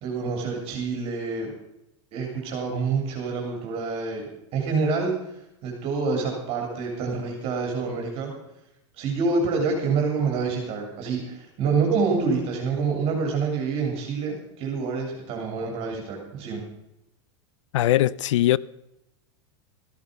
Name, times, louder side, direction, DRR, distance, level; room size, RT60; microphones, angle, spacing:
voice 1, 0.0-1.5 2.1-4.3 4.5-5.1 5.6-8.3 9.0-16.6, right 4 dB, 40° right, 3.4 m, -27 dB
voice 2, 17.7-18.6, left 13 dB, 90° left, 0.4 m, -20 dB
13.5 x 11.0 x 5.2 m
supercardioid pair, 135°, 15 cm